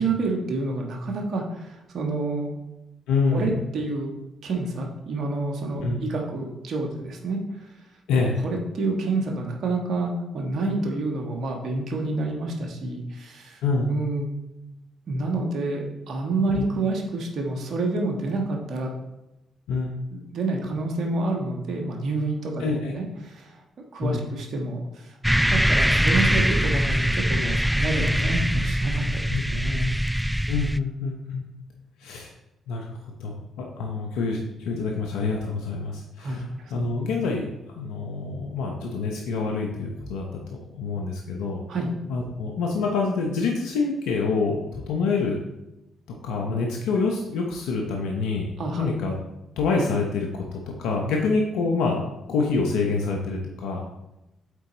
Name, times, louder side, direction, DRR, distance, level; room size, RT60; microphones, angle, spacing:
voice 1, 0.0-2.5 3.3-4.1 4.4-7.7 8.4-13.6 13.9-14.3 15.1-18.9 20.1-22.7 22.9-23.5 23.9-29.2 29.5-29.9 36.2-36.7 41.7-41.9 48.6-48.9, right 2 dB, 65° right, 1 dB, 1.4 m, -28 dB
voice 2, 3.1-3.6 5.8-6.0 8.1-8.4 13.6-13.9 16.5-16.7 19.7-20.0 22.6-22.9 24.0-24.3 29.3-29.4 30.5-31.4 32.0-32.3 32.7-32.9 33.2-37.5 37.7-41.6 42.1-45.4 46.1-48.5 48.8-49.1 49.6-52.0 52.3-53.8, left 4 dB, 85° left, 0 dB, 0.9 m, -26 dB
sound 1, 25.2-30.8, equal, 5° right, 0.3 m, -22 dB
8.2 x 4.1 x 4.0 m, 0.93 s
supercardioid pair, 55°, 0 cm